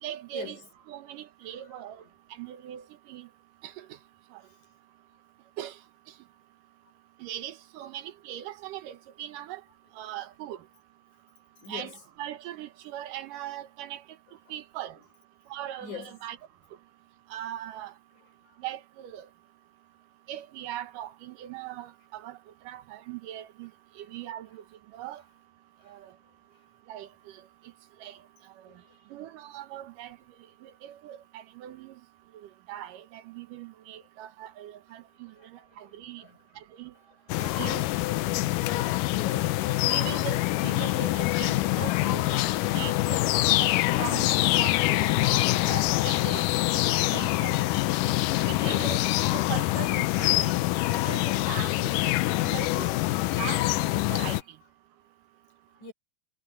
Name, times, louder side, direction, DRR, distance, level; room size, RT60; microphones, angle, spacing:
voice 1, 0.0-0.6 0.9-2.0 2.4-2.8 3.1-3.3 3.6-3.9 5.6-5.7 7.2-9.6 10.0-10.6 11.7-11.9 12.2-14.0 14.5-15.0 15.5-16.4 17.3-17.9 18.6-19.3 20.3-22.4 22.7-23.7 24.0-24.6 24.9-25.2 25.9-26.0 26.9-27.1 28.0-28.2 29.1-30.2 30.6-31.9 32.7-35.3 35.8-36.2 36.8-36.9 37.4-37.8 39.9-42.4 42.7-43.7 44.0-44.3 44.6-46.5 46.9-47.6 48.5-49.0 49.3-50.5 51.0-52.9 53.4-53.6 53.9-54.4, right 12 dB, 80° right, 2.7 m, -40 dB
voice 2, 11.6-11.9 15.8-16.2 28.7-28.8 35.4-35.5 36.2-36.4 38.6-39.5 48.6-49.0 55.8-55.9, left 6 dB, 65° left, 8.2 m, -41 dB
sound 1, 37.3-54.4, left 17 dB, 80° left, 2.3 m, -25 dB
omnidirectional pair, 3.8 m